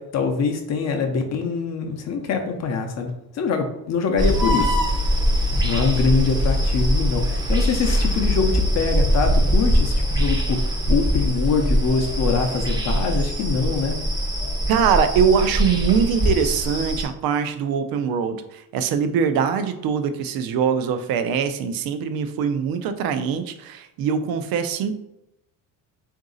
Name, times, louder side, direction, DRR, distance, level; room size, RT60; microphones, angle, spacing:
voice 1, 0.0-4.8 5.6-14.0, left 5 dB, 50° left, 4 dB, 0.5 m, -24 dB
sound 1, 4.2-17.1, equal, 15° right, 0.5 m, -22 dB
voice 2, 14.7-24.9, right 7 dB, 80° right, 9 dB, 0.5 m, -22 dB
3.9 x 2.6 x 3.8 m, 0.86 s
cardioid pair, 175°, 35 cm